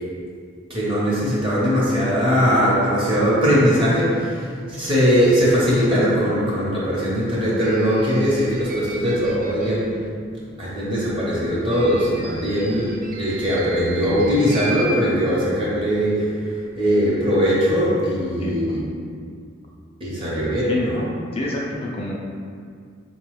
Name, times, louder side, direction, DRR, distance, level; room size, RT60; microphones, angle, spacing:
voice 1, 0.7-9.9 10.6-18.8 20.0-21.1, equal, 30° right, -7 dB, 0.9 m, -20 dB
sound 1, 7.6-10.1 11.6-14.9, right 4 dB, 45° right, 0.5 m, -36 dB
voice 2, 21.3-22.1, left 2 dB, 30° left, -3 dB, 0.3 m, -27 dB
4.6 x 2.3 x 3.1 m, 2.1 s
head